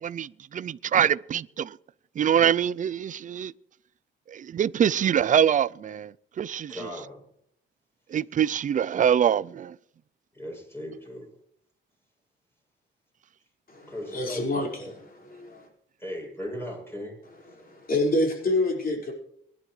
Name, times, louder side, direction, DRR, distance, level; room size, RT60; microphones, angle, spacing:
voice 1, 0.0-1.8 2.2-3.5 4.3-6.8 8.1-9.7, right 9 dB, 40° right, 0.4 m, -24 dB
voice 2, 6.7-7.2 10.3-11.3 13.9-14.5 14.8-14.9 16.0-17.1, equal, 10° left, 7.9 m, -37 dB
voice 3, 13.7-15.7 17.6-19.1, left 2 dB, 45° left, 5.3 m, -28 dB
23.5 x 11.5 x 3.2 m
cardioid pair, 95°, 20 cm